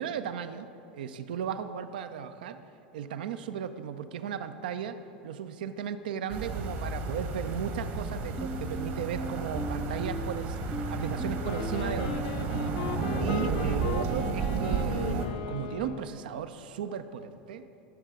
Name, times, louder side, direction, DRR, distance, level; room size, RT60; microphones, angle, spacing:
voice 1, 0.0-2.6 2.9-10.6 10.9-12.3 13.2-17.6, right 8 dB, 70° right, 10 dB, 0.5 m, -36 dB
sound 1, 6.3-15.3, right 4 dB, 55° right, 1.2 m, -32 dB
sound 2, 8.4-13.5, left 1 dB, 5° left, 0.4 m, -39 dB
Wind instrument woodwind instrument, 11.4-16.4, left 10 dB, 65° left, 0.4 m, -39 dB
13.5 x 7.1 x 3.6 m, 3.0 s
figure-of-eight pair, 80°, 5 cm